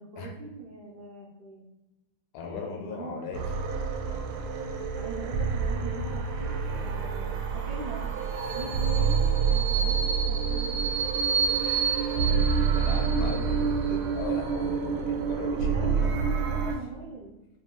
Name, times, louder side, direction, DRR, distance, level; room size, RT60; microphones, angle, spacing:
voice 1, 0.0-1.6 2.4-3.2 4.9-8.1 8.5-10.0 10.3-10.8 12.1-13.6 15.0-16.0 16.5-17.3, right 3 dB, 65° right, -4 dB, 1.0 m, -42 dB
voice 2, 2.3-3.4 4.1-4.2 8.9-9.2 12.7-16.5, left 5 dB, 75° left, 3 dB, 1.4 m, -39 dB
sound 1, 3.3-16.8, right 6 dB, 85° right, 1.5 m, -27 dB
4.7 x 2.2 x 3.6 m, 0.99 s
omnidirectional pair, 2.4 m